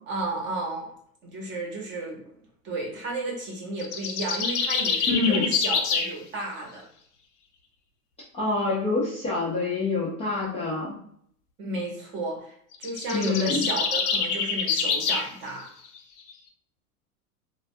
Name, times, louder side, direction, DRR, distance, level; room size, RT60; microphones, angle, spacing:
voice 1, 0.1-0.9 1.2-2.2 2.6-6.8 11.6-12.5 12.8-15.7, right 2 dB, 25° right, -1 dB, 0.8 m, -33 dB
sound 1, 3.8-6.1 12.7-15.3, left 5 dB, 85° left, 0.6 m, -26 dB
voice 2, 5.1-5.5 8.3-10.9 13.1-13.7, left 3 dB, 15° left, -8 dB, 0.4 m, -26 dB
2.2 x 2.2 x 2.6 m, 0.65 s
hypercardioid pair, 125°, 45 cm